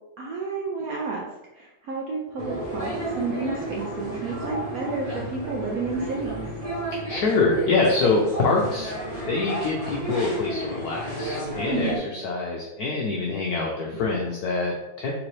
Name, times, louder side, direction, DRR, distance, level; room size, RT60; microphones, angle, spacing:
voice 1, 0.2-1.2 1.5-2.9 3.2-6.3 11.7-12.0, right 4 dB, 75° right, -2 dB, 0.8 m, -30 dB
sound 1, 2.4-12.0, right 1 dB, 25° right, 1.0 m, -32 dB
voice 2, 7.1-8.9 9.2-15.1, left 3 dB, 70° left, -1 dB, 0.9 m, -25 dB
3.9 x 3.6 x 3.1 m, 0.99 s
omnidirectional pair, 2.2 m